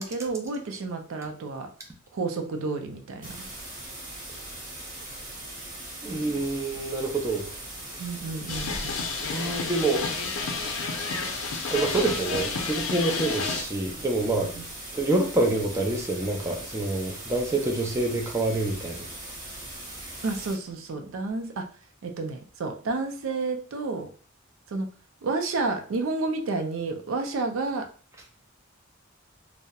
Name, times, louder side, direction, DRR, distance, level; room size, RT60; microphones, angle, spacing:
voice 1, 0.0-1.7 2.1-3.5 6.0-6.1 8.0-9.1 14.6-14.7 20.2-21.7 22.0-24.1 24.7-24.9 25.2-27.9, right 3 dB, 80° right, 4 dB, 0.4 m, -30 dB
sound 1, 3.2-20.6, right 1 dB, 40° right, 1.1 m, -40 dB
voice 2, 6.0-7.5 9.3-10.0 11.7-14.5 14.9-19.1, right 2 dB, 15° right, 0 dB, 0.4 m, -27 dB
sound 2, 8.5-13.6, left 4 dB, 85° left, 0.4 m, -30 dB
2.7 x 2.0 x 2.3 m, 0.41 s
head